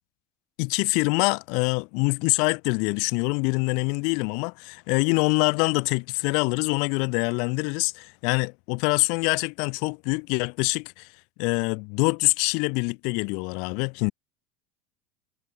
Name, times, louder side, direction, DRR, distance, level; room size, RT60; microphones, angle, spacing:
voice 1, 0.6-11.1 11.4-14.1, left 36 dB, 65° left, 3.5 m, -25 dB
hypercardioid pair, 85°, 0 cm